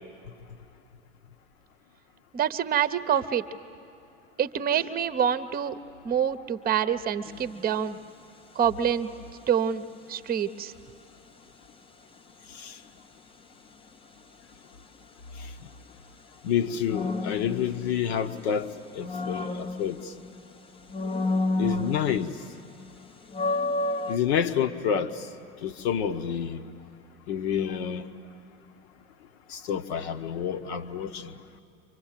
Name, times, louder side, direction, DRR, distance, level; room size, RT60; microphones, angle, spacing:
voice 1, 2.3-3.5 4.4-5.8 6.0-8.0 8.5-9.1 9.5-10.7, right 8 dB, 25° right, 12 dB, 0.9 m, -26 dB
sound 1, 7.3-7.6 16.9-18.3 18.8-20.4 20.9-22.5 22.8-22.9 23.3-24.2, left 2 dB, 15° left, 0.8 m, -30 dB
voice 2, 16.4-20.0 21.6-22.3 24.1-25.1 25.6-26.6 27.3-28.0 29.5-31.3, left 8 dB, 60° left, 9 dB, 1.3 m, -28 dB
29.5 x 25.0 x 7.5 m, 2.5 s
figure-of-eight pair, 80°, 36 cm